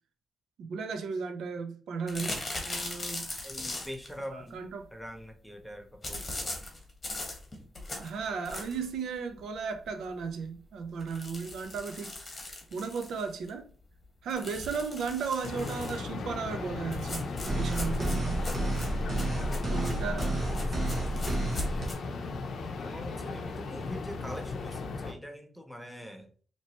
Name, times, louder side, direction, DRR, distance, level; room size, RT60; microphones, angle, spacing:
voice 1, 0.6-2.4 2.6-3.3 4.3-4.9 8.0-12.2 12.7-13.7 14.2-18.4 19.7-20.3 20.9-21.1, right 5 dB, 85° right, 0.6 m, -35 dB
sound 1, 2.1-4.1 6.0-8.9 9.4-9.5 9.8-9.9 10.2-10.3 11.0-13.5 14.3-16.1 16.9-21.9, left 2 dB, 30° left, 1.2 m, -39 dB
voice 2, 3.4-4.6 4.9-6.6 19.0-20.3 20.6-21.0 22.8-26.3, equal, ahead, 0.7 m, -44 dB
sound 2, 15.4-25.1, left 3 dB, 65° left, 0.6 m, -37 dB
sound 3, 17.5-21.9, right 1 dB, 50° right, 1.3 m, -31 dB
4.3 x 2.9 x 2.9 m
cardioid pair, 110°, 0 cm